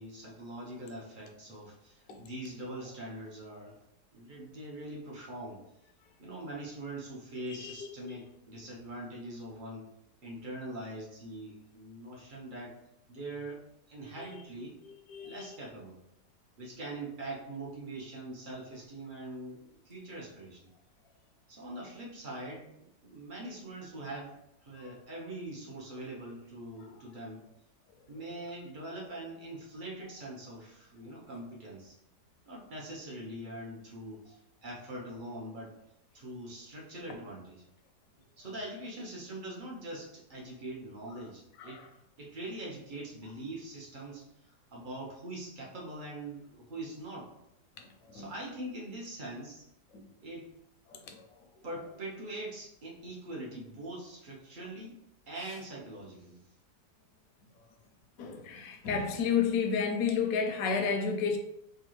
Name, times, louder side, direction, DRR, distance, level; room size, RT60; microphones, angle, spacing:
voice 1, 0.0-3.8 4.1-5.6 6.2-9.9 10.2-12.8 13.1-14.7 15.2-16.0 16.6-20.7 21.5-22.7 23.0-27.4 28.1-32.0 32.5-35.8 36.1-37.6 38.4-41.8 42.2-47.3 48.1-49.7 50.2-50.5 51.6-55.0 55.3-56.4, right 1 dB, 45° right, -3 dB, 0.6 m, -43 dB
voice 2, 7.6-8.1 14.2-14.4 14.8-15.6 24.8-24.9 26.8-26.9 41.6-41.9 47.8-48.3 49.9-50.1 50.9-51.3 58.2-61.4, left 6 dB, 70° left, 5 dB, 0.9 m, -32 dB
4.5 x 2.3 x 3.1 m, 0.85 s
omnidirectional pair, 1.8 m